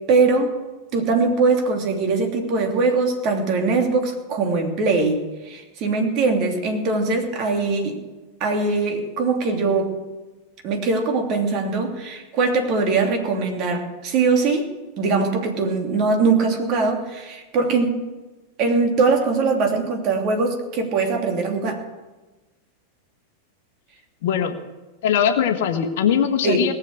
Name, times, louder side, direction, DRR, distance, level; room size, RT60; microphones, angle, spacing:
voice 1, 0.1-0.5 0.9-8.0 8.4-9.9 10.6-14.7 15.0-18.0 18.6-21.8 26.4-26.6, right 4 dB, 40° right, 3 dB, 2.9 m, -21 dB
voice 2, 24.2-24.5 25.0-26.7, left 8 dB, 55° left, 8 dB, 1.3 m, -20 dB
19.0 x 7.4 x 8.2 m, 1.2 s
figure-of-eight pair, 90°, 0 cm